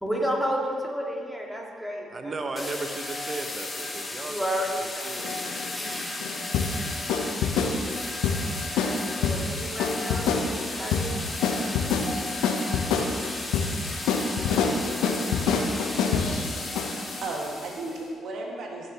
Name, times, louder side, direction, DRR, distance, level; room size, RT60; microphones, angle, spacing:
voice 1, 0.0-2.7 4.3-5.1 8.8-10.4 10.8-11.2, equal, ahead, -2 dB, 2.5 m, -31 dB
voice 2, 2.1-4.4 4.8-6.1, right 3 dB, 40° right, 6 dB, 1.1 m, -36 dB
sound 1, 2.6-18.0, left 2 dB, 30° left, 1.5 m, -35 dB
sound 2, 5.2-17.2, left 5 dB, 75° left, 0.7 m, -27 dB
voice 3, 14.6-15.6 16.9-18.9, right 2 dB, 65° right, -1 dB, 1.8 m, -36 dB
15.5 x 7.0 x 3.0 m, 2.1 s
hypercardioid pair, 45°, 0 cm